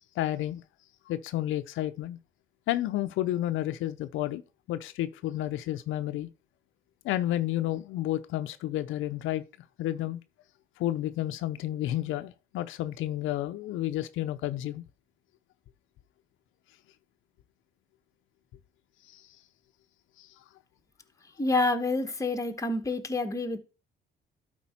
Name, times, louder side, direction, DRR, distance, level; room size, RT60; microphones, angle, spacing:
voice 1, 0.2-0.6 1.1-2.2 2.7-4.4 4.7-6.3 7.0-9.4 9.8-10.2 10.8-14.8 19.1-19.2 20.2-20.3, left 14 dB, 85° left, 0.5 m, -31 dB
voice 2, 21.4-23.6, left 2 dB, 15° left, 1.1 m, -28 dB
11.5 x 4.4 x 4.2 m
cardioid pair, 90°, 20 cm